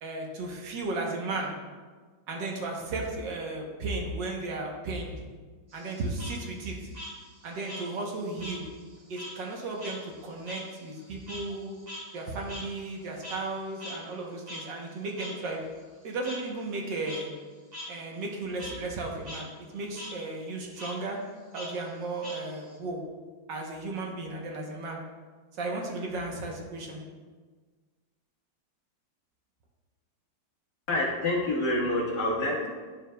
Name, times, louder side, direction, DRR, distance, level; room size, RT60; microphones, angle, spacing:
voice 1, 0.0-1.5 2.3-5.1 5.7-6.8 7.4-8.6 9.1-11.7 12.1-15.6 16.0-17.3 17.9-21.2 21.5-23.0 23.5-25.0 25.5-27.0, right 2 dB, 70° right, 0 dB, 1.6 m, -35 dB
Frog, 5.7-8.6 8.9-13.5 13.8-13.9 14.5-14.6 15.2-15.3 16.2-16.4 16.9-17.2 17.7-17.9 18.2-18.7 19.1-19.4 19.7-20.1 20.8-20.9 21.5-22.8, left 1 dB, 25° right, 1.4 m, -42 dB
voice 2, 30.9-32.7, left 1 dB, 55° left, -4 dB, 2.0 m, -27 dB
10.5 x 6.9 x 2.3 m, 1.4 s
omnidirectional pair, 2.1 m